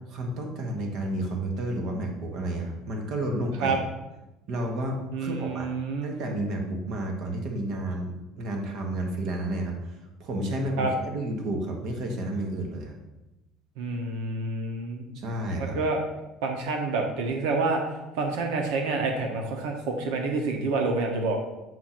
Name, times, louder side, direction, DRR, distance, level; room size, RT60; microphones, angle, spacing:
voice 1, 0.1-3.8 4.5-5.7 6.0-13.0 15.1-15.8, right 1 dB, 45° right, 2 dB, 1.1 m, -31 dB
voice 2, 5.1-6.1 10.8-10.9 13.8-15.0 15.6-16.0 16.4-17.8 18.2-21.4, right 3 dB, 80° right, 3 dB, 0.8 m, -28 dB
7.6 x 2.5 x 5.8 m, 1.0 s
cardioid pair, 170°, 0 cm